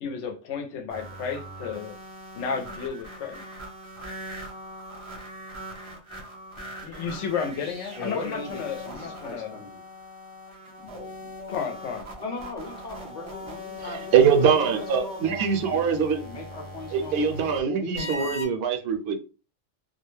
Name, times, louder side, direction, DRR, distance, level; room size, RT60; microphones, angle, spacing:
voice 1, 0.0-1.9 2.4-3.4 6.8-9.6 10.8-11.1 11.5-12.1, left 6 dB, 85° left, 0.9 m, -32 dB
sound 1, 0.9-17.6 18.0-18.4, left 1 dB, 35° right, 0.5 m, -40 dB
voice 2, 8.0-9.8 12.2-15.8 16.2-18.4, left 2 dB, 45° left, 0.8 m, -39 dB
voice 3, 13.8-16.2 16.9-19.1, right 7 dB, 65° right, 0.7 m, -23 dB
2.3 x 2.1 x 3.0 m
omnidirectional pair, 1.2 m